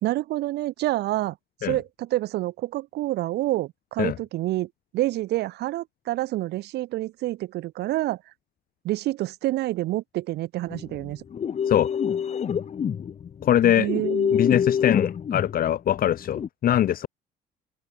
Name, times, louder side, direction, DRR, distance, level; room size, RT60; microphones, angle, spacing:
voice 1, 0.0-1.4 1.6-4.7 4.9-8.2 8.8-11.2 13.6-14.4, right 16 dB, 75° right, 2.5 m, -28 dB
sound 1, 10.7-16.5, left 7 dB, 40° left, 2.3 m, -27 dB
voice 2, 13.4-13.9 14.3-17.1, left 11 dB, 60° left, 3.9 m, -22 dB
open air
cardioid pair, 110°, 17 cm